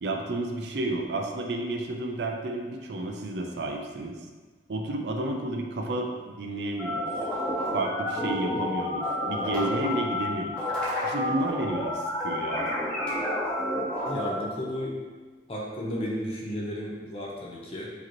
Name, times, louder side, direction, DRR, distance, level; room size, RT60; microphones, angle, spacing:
voice 1, 0.0-4.2 4.7-7.1 7.7-10.6 11.0-12.7, right 2 dB, 70° right, 2 dB, 0.5 m, -31 dB
sound 1, 6.8-14.4, left 1 dB, 5° left, 1.0 m, -30 dB
voice 2, 14.1-15.0 15.5-17.9, equal, 30° left, -4 dB, 0.7 m, -33 dB
4.9 x 2.9 x 3.0 m, 1.4 s
head